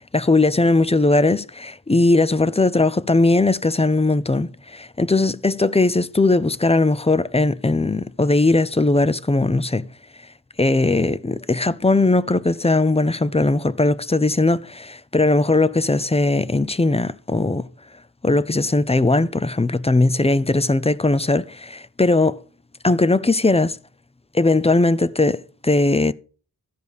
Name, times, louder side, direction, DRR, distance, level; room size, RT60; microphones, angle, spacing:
voice 1, 0.1-9.9 10.6-17.7 18.2-22.4 22.8-23.8 24.3-26.1, left 2 dB, 15° left, 0.5 m, -19 dB
14.0 x 5.2 x 6.4 m
wide cardioid pair, 65°, 41 cm